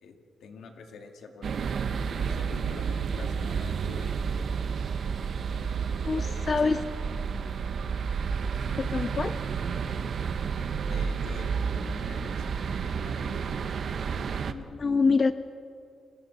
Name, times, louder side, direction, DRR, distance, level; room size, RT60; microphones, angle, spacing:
voice 1, 0.0-1.7 2.1-4.2 5.5-6.8 10.9-13.6, left 4 dB, 75° left, 4 dB, 2.1 m, -47 dB
sound 1, 1.4-14.5, right 6 dB, 55° right, 0.8 m, -31 dB
voice 2, 6.0-6.8 8.8-9.3 14.5-15.3, left 4 dB, 35° left, 12 dB, 0.4 m, -25 dB
30.0 x 21.0 x 4.1 m, 2.6 s
wide cardioid pair, 135°, 0 cm